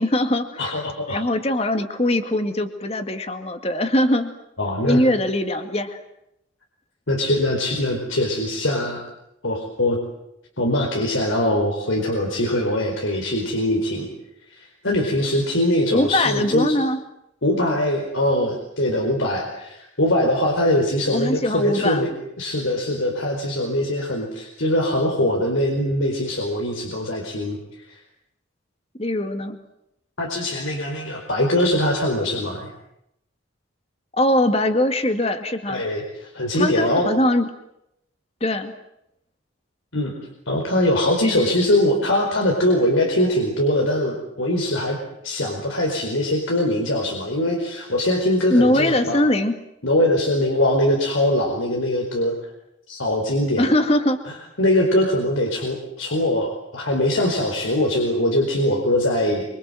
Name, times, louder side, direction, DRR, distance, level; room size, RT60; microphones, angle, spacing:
voice 1, 0.0-0.7 1.1-4.3 4.8-6.0 15.9-17.0 21.1-22.0 29.0-29.6 34.2-35.8 36.5-37.5 38.4-38.7 48.5-49.5 53.6-54.2, left 1 dB, 30° left, 8 dB, 2.1 m, -21 dB
voice 2, 0.6-1.2 4.6-5.0 7.1-9.0 9.4-10.0 10.6-14.1 14.5-16.8 17.4-28.0 30.2-32.7 35.7-37.1 39.9-40.1 40.5-49.2 49.8-52.3 52.9-53.6 54.6-59.5, left 1 dB, 85° left, 1 dB, 4.6 m, -22 dB
26.5 x 25.5 x 7.8 m, 0.81 s
head